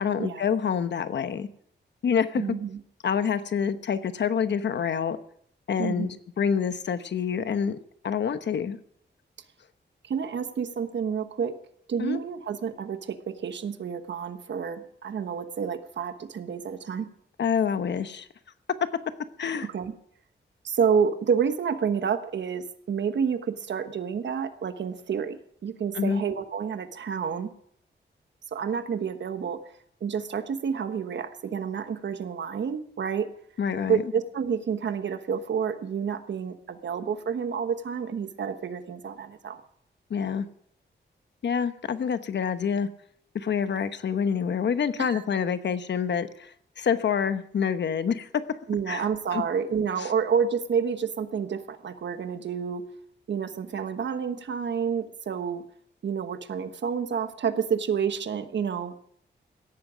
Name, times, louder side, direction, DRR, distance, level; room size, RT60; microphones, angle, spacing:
voice 1, 0.0-1.5 2.0-2.4 3.0-5.2 5.7-7.8 8.0-8.8 12.0-12.2 17.4-18.3 19.4-19.7 25.9-26.2 33.6-34.0 40.1-40.5 41.4-42.9 43.3-48.3 48.9-49.1 49.3-49.4 50.0-50.1, left 7 dB, 70° left, 11 dB, 1.0 m, -27 dB
voice 2, 2.4-2.8 5.8-6.1 10.0-11.5 11.9-17.1 19.7-19.9 20.6-27.5 28.5-29.6 30.0-33.3 33.9-39.6 45.0-45.2 48.7-52.8 53.3-55.6 56.0-59.0, right 7 dB, 70° right, 9 dB, 1.3 m, -29 dB
17.0 x 14.0 x 5.1 m, 0.66 s
wide cardioid pair, 150°, 19 cm